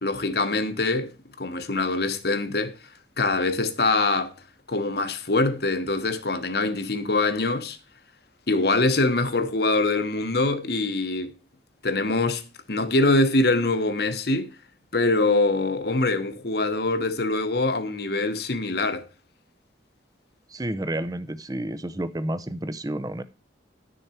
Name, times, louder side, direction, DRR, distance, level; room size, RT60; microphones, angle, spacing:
voice 1, 0.0-2.8 3.2-4.3 4.7-7.8 8.5-11.4 11.8-12.4 12.7-14.6 14.9-19.1, left 2 dB, 55° left, 1.1 m, -24 dB
voice 2, 20.5-23.2, right 1 dB, 20° right, 0.6 m, -30 dB
11.0 x 6.7 x 4.4 m
head